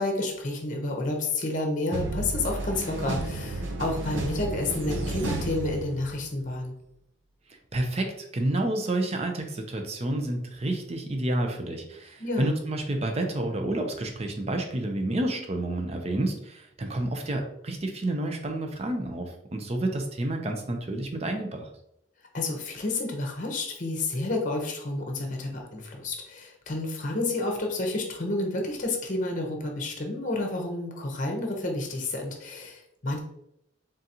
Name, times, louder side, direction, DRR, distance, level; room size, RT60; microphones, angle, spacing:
voice 1, 0.0-6.7 12.2-12.6 22.3-33.2, left 2 dB, 40° left, 2 dB, 0.8 m, -30 dB
sound 1, 1.9-6.4, right 2 dB, 70° right, 0.7 m, -32 dB
voice 2, 7.7-21.7, right 1 dB, 30° right, 4 dB, 0.5 m, -29 dB
3.9 x 3.7 x 2.8 m, 0.79 s
head